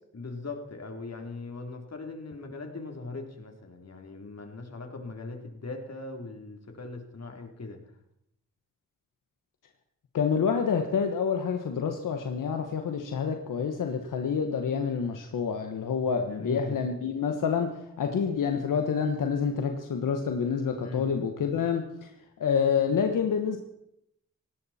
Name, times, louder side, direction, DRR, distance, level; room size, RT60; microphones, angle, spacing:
voice 1, 0.1-7.8 16.2-16.8 20.8-21.1, left 3 dB, 55° left, 3 dB, 3.4 m, -40 dB
voice 2, 10.1-17.7 18.0-21.8 22.4-23.6, left 6 dB, 90° left, 5 dB, 1.3 m, -27 dB
19.0 x 16.5 x 4.3 m, 0.78 s
cardioid pair, 45°, 31 cm